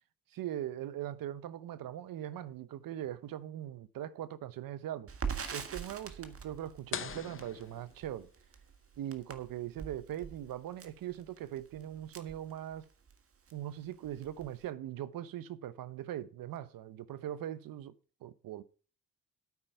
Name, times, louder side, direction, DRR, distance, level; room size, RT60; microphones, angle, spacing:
voice 1, 0.3-5.1 5.5-8.3 9.0-12.9 13.5-17.9 18.2-18.6, right 12 dB, 75° right, 0.9 m, -41 dB
Crackle, 5.1-13.1 13.5-13.6 13.9-14.7, right 6 dB, 40° right, 1.6 m, -43 dB
sound 1, 6.9-8.6, left 8 dB, 35° left, 0.8 m, -43 dB
9.0 x 8.3 x 5.7 m
cardioid pair, 85°, 35 cm